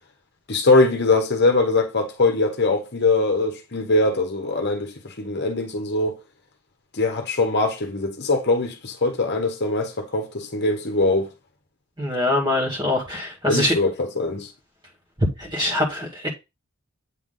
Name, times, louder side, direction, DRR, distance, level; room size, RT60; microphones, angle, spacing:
voice 1, 0.5-6.2 6.9-11.3 13.5-14.5, left 2 dB, 50° left, 1.1 m, -22 dB
voice 2, 12.0-13.7 15.2-16.3, left 1 dB, 20° right, 2.1 m, -23 dB
8.4 x 3.5 x 3.8 m
head